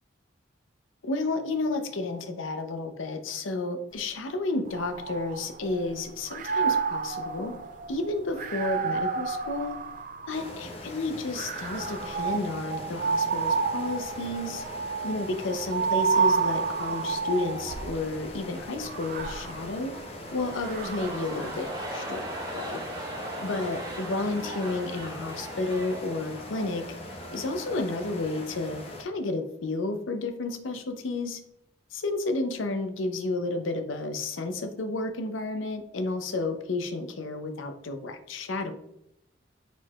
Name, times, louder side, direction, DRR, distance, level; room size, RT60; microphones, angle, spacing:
voice 1, 1.0-7.5 7.9-9.8 10.3-14.6 15.0-19.9 20.3-22.2 22.5-22.8 23.4-26.8 27.3-31.4 31.9-38.7, left 2 dB, 85° left, 7 dB, 0.6 m, -31 dB
sound 1, 4.7-5.9 6.3-10.6 11.3-18.0 18.8-21.4, right 5 dB, 40° right, 0.4 m, -30 dB
sound 2, 10.3-29.0, left 1 dB, 30° left, 0.6 m, -42 dB
sound 3, 20.2-28.3 28.6-28.7, right 1 dB, 20° right, 1.0 m, -39 dB
4.4 x 4.3 x 2.3 m, 0.78 s
head